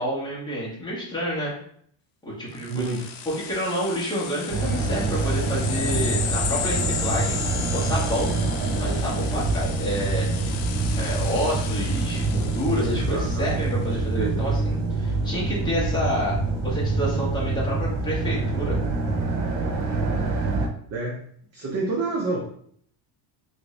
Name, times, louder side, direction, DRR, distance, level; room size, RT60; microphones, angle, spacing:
voice 1, 0.0-1.5 2.2-2.9 3.3-8.4 8.8-10.5 11.0-16.4 16.6-18.8, equal, 10° left, -7 dB, 1.1 m, -29 dB
sound 1, 2.6-13.7, left 8 dB, 70° left, 0.6 m, -34 dB
voice 2, 2.7-3.0 12.8-14.5 20.9-21.3 21.5-22.4, right 3 dB, 35° right, -2 dB, 0.5 m, -29 dB
sound 2, 4.5-20.7, right 3 dB, 85° right, 0.7 m, -26 dB
3.4 x 2.6 x 3.1 m, 0.63 s
cardioid pair, 160°, 50 cm